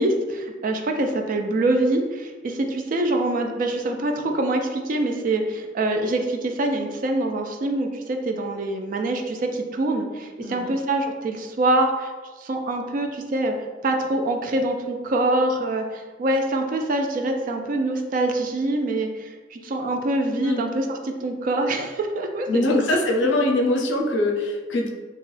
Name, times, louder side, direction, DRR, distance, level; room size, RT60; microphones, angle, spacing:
voice 1, 0.0-12.1 12.4-13.5 13.8-22.8, right 2 dB, 45° right, 4 dB, 0.3 m, -25 dB
voice 2, 10.4-10.8 20.4-20.6 22.5-24.9, left 2 dB, 80° left, 2 dB, 0.5 m, -23 dB
2.8 x 2.2 x 3.1 m, 1.3 s
head